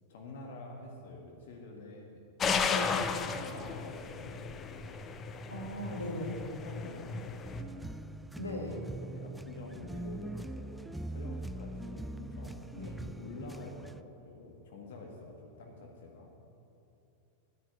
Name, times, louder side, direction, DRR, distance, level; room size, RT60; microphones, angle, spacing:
voice 1, 0.1-2.2 3.2-4.9 6.5-8.0 8.8-12.7 13.2-16.3, left 2 dB, 55° left, 0 dB, 1.7 m, -48 dB
sound 1, 2.4-7.6, left 5 dB, 25° left, 0.8 m, -35 dB
voice 2, 2.7-3.0 5.5-6.4 8.4-8.8 12.8-13.0, left 1 dB, 80° left, 0 dB, 2.0 m, -38 dB
sound 2, 7.4-14.0, right 1 dB, 5° right, 0.4 m, -42 dB
10.5 x 10.0 x 9.4 m, 2.8 s
figure-of-eight pair, 90°, 0 cm